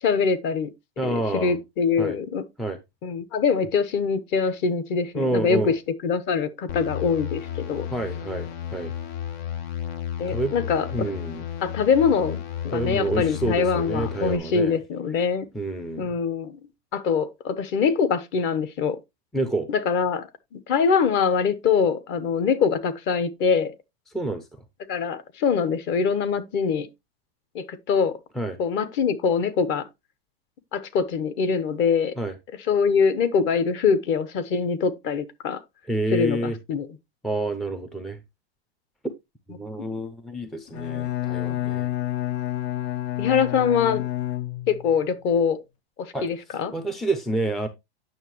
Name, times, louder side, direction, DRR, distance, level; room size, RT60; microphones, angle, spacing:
voice 1, 0.0-0.7 1.3-2.4 3.0-5.7 6.0-7.9 10.2-11.1 11.6-12.4 12.6-15.5 16.0-16.6 16.9-19.0 19.7-20.3 20.5-23.7 24.9-26.9 27.5-28.1 28.6-29.8 30.7-32.1 32.7-35.6 36.1-36.9 43.2-44.0 44.7-45.6 46.2-46.7, left 6 dB, 35° left, 1.0 m, -23 dB
voice 2, 1.0-1.6 2.0-2.2 2.6-2.8 5.1-5.7 7.9-8.9 10.3-10.6 10.9-11.4 12.7-14.8 15.5-16.2 19.3-19.7 24.1-24.6 28.3-28.6 32.2-32.3 35.9-36.6 37.2-38.2 39.5-41.9 46.1-47.7, right 2 dB, ahead, 0.4 m, -28 dB
sound 1, 6.7-14.4, left 10 dB, 70° left, 1.4 m, -33 dB
Bowed string instrument, 40.7-45.0, left 14 dB, 90° left, 0.9 m, -29 dB
9.2 x 6.1 x 2.9 m
supercardioid pair, 140°, 31 cm